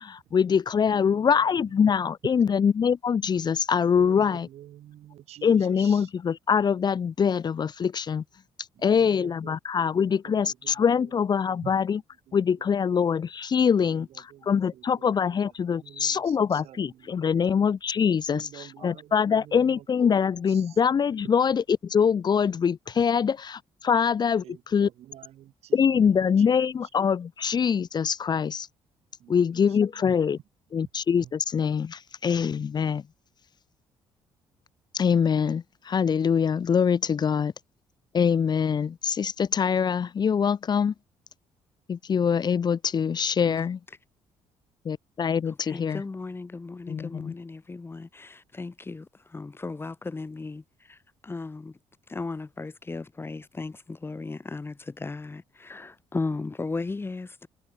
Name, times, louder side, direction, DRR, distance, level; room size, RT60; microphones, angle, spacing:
voice 1, 0.0-4.5 5.4-8.2 8.8-12.0 12.3-14.1 14.5-18.4 18.8-21.6 21.9-23.6 23.8-24.4 24.7-24.9 25.7-28.7 29.3-30.4 30.7-33.0 34.9-37.5 38.1-40.9 41.9-43.8 44.9-46.0 46.9-47.3, left 7 dB, 40° left, 0.9 m, -24 dB
voice 2, 0.7-2.6 4.0-6.1 8.7-12.7 13.8-17.6 18.3-20.8 24.4-26.9 29.2-30.1 31.2-31.3, right 12 dB, 75° right, 4.6 m, -49 dB
voice 3, 45.4-51.0 51.2-51.8 52.1-57.5, left 3 dB, 20° left, 1.4 m, -36 dB
cardioid pair, 90°, 11 cm